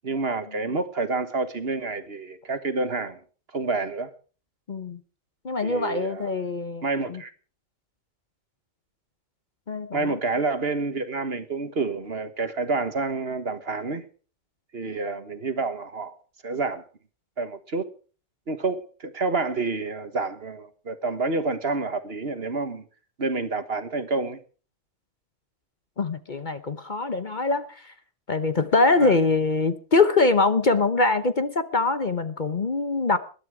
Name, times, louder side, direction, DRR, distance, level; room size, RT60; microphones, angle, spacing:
voice 1, 0.0-3.2 3.5-4.1 5.6-6.3 6.8-7.3 9.9-14.1 14.7-16.2 16.4-16.8 17.4-17.9 18.5-22.8 23.2-24.4 29.0-29.1, right 3 dB, 50° right, 1.6 m, -28 dB
voice 2, 4.7-5.0 5.4-7.2 9.7-10.2 26.0-27.9 28.3-33.2, left 3 dB, 40° left, 1.0 m, -23 dB
20.5 x 12.5 x 4.9 m
omnidirectional pair, 1.3 m